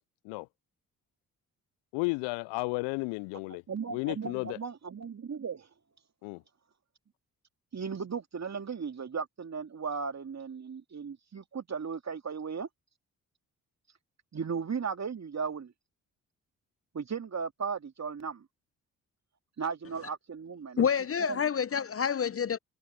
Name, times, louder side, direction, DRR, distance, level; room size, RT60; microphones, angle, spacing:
voice 1, 1.9-3.6 3.9-4.6 6.2-6.4, left 29 dB, 70° left, 0.6 m, -33 dB
voice 2, 3.7-5.7 7.7-12.7 14.3-15.7 16.9-18.5 19.6-20.8 21.2-21.5, right 6 dB, 35° right, 2.5 m, -36 dB
voice 3, 20.8-22.6, left 7 dB, 30° left, 0.7 m, -28 dB
figure-of-eight pair, 40°, 43 cm